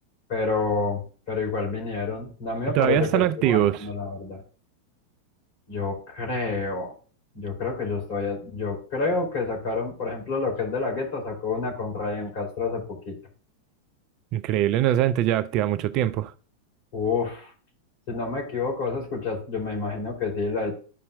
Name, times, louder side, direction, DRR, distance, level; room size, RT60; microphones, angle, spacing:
voice 1, 0.3-1.0 1.3-4.4 5.7-6.9 7.3-13.1 16.9-17.5 18.1-20.8, left 4 dB, 50° left, 3.7 m, -28 dB
voice 2, 2.7-3.8 14.3-16.3, right 12 dB, 40° right, 0.4 m, -22 dB
12.5 x 5.4 x 2.5 m
figure-of-eight pair, 90°, 0 cm